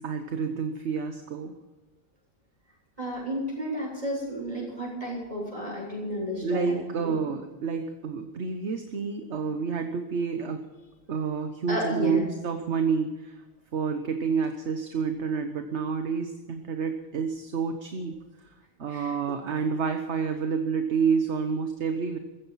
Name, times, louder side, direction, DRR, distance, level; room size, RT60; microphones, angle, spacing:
voice 1, 0.0-1.5 6.4-10.7 11.1-13.3 13.7-18.2 18.8-22.2, right 5 dB, 60° right, 7 dB, 1.4 m, -29 dB
voice 2, 3.0-7.1 11.7-12.3 18.9-19.1, equal, 25° right, -2 dB, 7.7 m, -32 dB
15.5 x 14.5 x 5.7 m, 1.1 s
omnidirectional pair, 1.4 m